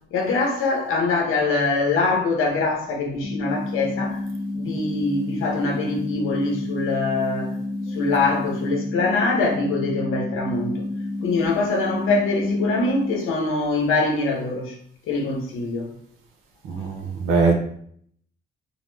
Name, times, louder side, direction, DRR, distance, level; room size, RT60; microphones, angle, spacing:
voice 1, 0.1-4.2 4.5-7.6 7.9-10.8 11.2-14.8 15.1-15.9, left 3 dB, 80° left, 0.7 m, -23 dB
sound 1, 3.2-13.2, left 2 dB, 15° left, 0.3 m, -30 dB
voice 2, 16.6-17.5, right 4 dB, 85° right, 0.5 m, -21 dB
2.5 x 2.0 x 3.1 m
supercardioid pair, 65°, 21 cm